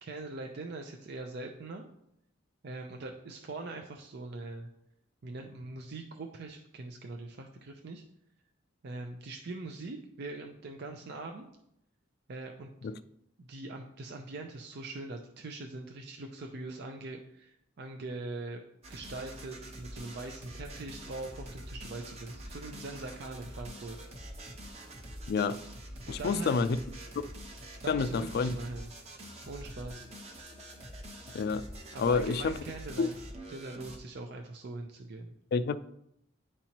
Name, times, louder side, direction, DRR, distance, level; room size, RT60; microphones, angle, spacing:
voice 1, 0.0-1.8 2.6-4.7 5.2-8.0 8.8-11.4 12.3-12.7 13.4-18.6 18.9-24.0 26.1-26.6 27.8-28.9 29.5-30.1 31.9-33.2 33.5-35.4, right 2 dB, 60° right, 0.5 m, -42 dB
sound 1, 18.8-34.0, right 1 dB, 35° right, 0.9 m, -45 dB
voice 2, 25.3-25.6 26.1-26.8 27.9-28.6 31.3-31.7 32.0-32.6 33.0-33.1 35.5-35.8, left 4 dB, 55° left, 0.3 m, -28 dB
9.7 x 4.3 x 2.9 m
head